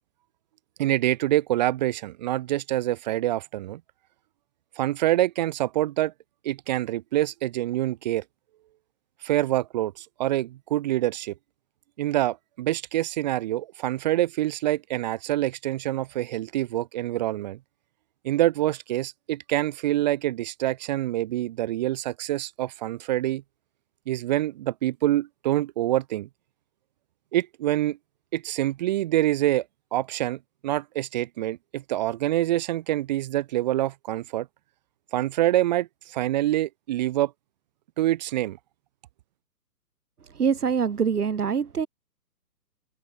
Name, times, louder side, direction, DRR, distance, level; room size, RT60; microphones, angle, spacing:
voice 1, 0.8-3.8 4.8-6.1 6.4-8.2 9.2-11.3 12.0-17.6 18.2-23.4 24.1-26.3 27.3-28.0 28.3-29.6 29.9-34.5 35.1-37.3 38.0-38.6, right 14 dB, 25° right, 5.0 m, -26 dB
voice 2, 40.2-41.9, right 6 dB, 65° right, 3.4 m, -24 dB
hypercardioid pair, 170°, 49 cm